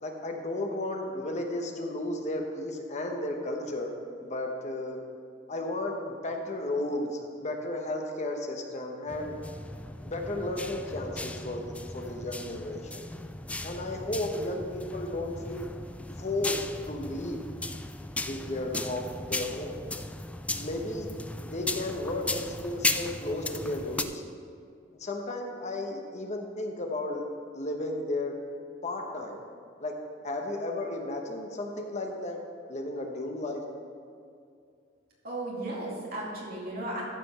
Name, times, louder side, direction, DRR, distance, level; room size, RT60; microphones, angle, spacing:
voice 1, 0.0-3.9 4.2-5.0 5.5-9.4 10.0-13.0 13.6-15.7 16.2-17.4 18.2-19.8 20.5-21.1 21.4-24.2 25.0-27.2 27.5-28.4 28.8-29.4 29.8-30.0 30.2-32.4 32.7-33.6, left 1 dB, 40° left, 2 dB, 1.0 m, -34 dB
sound 1, 9.1-24.0, left 2 dB, 5° left, 0.3 m, -36 dB
voice 2, 35.2-37.0, right 1 dB, 55° right, -4 dB, 2.5 m, -35 dB
13.5 x 5.1 x 5.6 m, 2.3 s
head